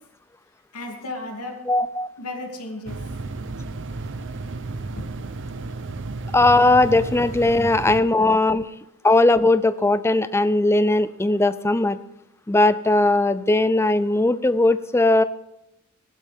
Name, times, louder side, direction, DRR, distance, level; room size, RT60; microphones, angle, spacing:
voice 1, 0.7-1.6 2.2-3.0 4.8-5.1, left 2 dB, 85° left, 1 dB, 2.9 m, -34 dB
voice 2, 1.7-2.1 6.3-8.7 9.0-12.0 12.5-15.2, left 2 dB, 10° left, 14 dB, 0.4 m, -18 dB
sound 1, 2.9-8.0, right 3 dB, 55° right, 0.8 m, -33 dB
16.0 x 12.0 x 3.6 m, 0.88 s
head